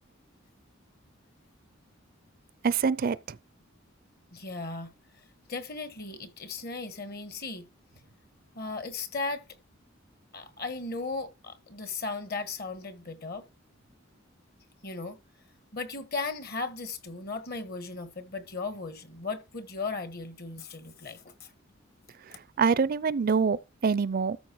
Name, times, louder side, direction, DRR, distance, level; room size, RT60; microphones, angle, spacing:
voice 1, 2.6-3.4 22.3-24.4, right 5 dB, 45° right, 0.4 m, -26 dB
voice 2, 4.3-4.9 5.5-7.7 8.5-9.4 10.3-13.4 14.8-15.2 15.7-21.5, left 3 dB, 50° left, 1.5 m, -36 dB
13.0 x 4.6 x 4.6 m
head